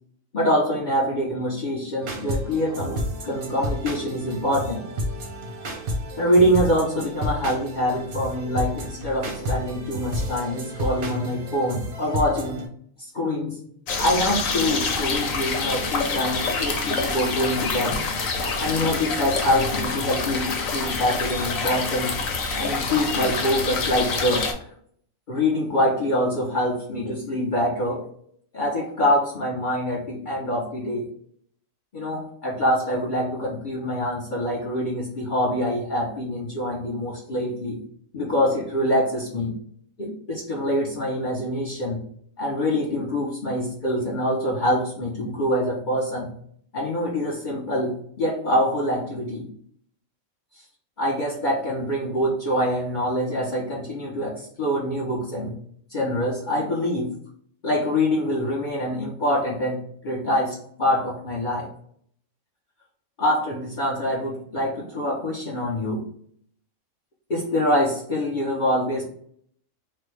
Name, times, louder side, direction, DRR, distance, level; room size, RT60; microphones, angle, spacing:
voice 1, 0.3-4.8 6.2-12.6 13.0-13.6 14.0-18.0 18.6-22.1 22.6-24.5 25.3-28.1 28.5-31.1 31.9-37.8 38.1-39.5 40.0-42.0 42.4-46.3 46.7-49.5 50.5-50.6 51.0-55.5 55.9-57.1 57.6-61.7 63.2-66.1 67.3-69.0, equal, 45° left, -4 dB, 0.7 m, -25 dB
sound 1, 2.0-12.7, equal, 50° right, 0.7 m, -31 dB
sound 2, 13.9-24.5, left 4 dB, 90° left, 1.1 m, -26 dB
3.3 x 2.1 x 3.1 m, 0.62 s
omnidirectional pair, 1.4 m